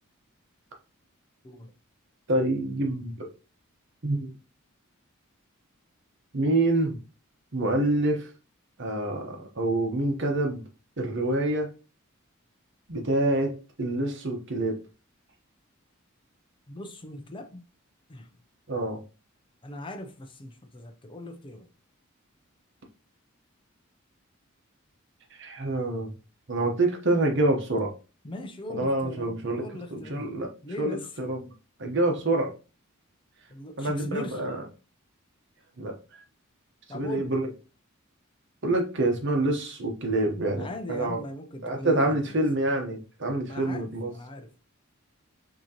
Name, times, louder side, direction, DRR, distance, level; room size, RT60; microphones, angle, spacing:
voice 1, 2.3-3.3 4.0-4.3 6.3-7.0 7.5-8.3 8.8-10.6 11.0-11.7 12.9-13.5 13.8-14.8 18.7-19.0 25.4-26.1 26.5-27.9 28.7-29.6 29.9-30.5 30.8-31.5 31.8-32.5 33.8-34.6 35.8-35.9 36.9-37.5 38.6-41.2 41.6-44.1, right 2 dB, 60° right, 1.0 m, -26 dB
voice 2, 16.7-17.6 18.1-18.3 19.6-21.7 28.2-30.2 30.6-31.1 33.5-34.4 36.9-37.5 40.5-42.2 43.5-44.6, left 1 dB, 25° left, 0.5 m, -40 dB
6.1 x 2.9 x 2.9 m
head